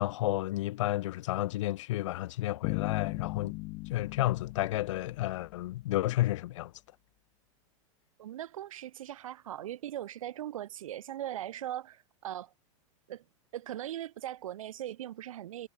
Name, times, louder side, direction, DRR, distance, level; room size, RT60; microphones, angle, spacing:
voice 1, 0.0-3.6 3.9-6.7, left 16 dB, 65° left, 5.1 m, -31 dB
Bass guitar, 2.6-5.7, left 24 dB, 40° left, 6.2 m, -38 dB
voice 2, 8.2-12.5 13.1-13.2 13.5-15.7, right 12 dB, 80° right, 7.5 m, -39 dB
supercardioid pair, 150°, 17 cm